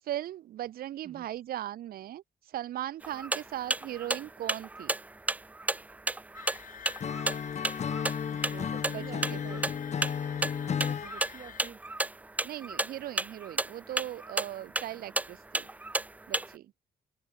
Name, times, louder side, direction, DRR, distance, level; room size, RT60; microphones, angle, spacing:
voice 1, 0.0-4.9 8.9-9.6 12.4-15.7 16.3-16.7, right 13 dB, 90° right, 0.7 m, -38 dB
sound 1, 3.0-16.5, right 2 dB, 10° right, 0.3 m, -33 dB
sound 2, 6.3-11.7, left 9 dB, 65° left, 1.8 m, -47 dB
Acoustic guitar / Strum, 7.0-11.1, left 7 dB, 50° left, 1.2 m, -33 dB
voice 2, 8.5-9.7 10.8-11.8, right 7 dB, 55° right, 3.0 m, -48 dB
open air
cardioid pair, 125°, 15 cm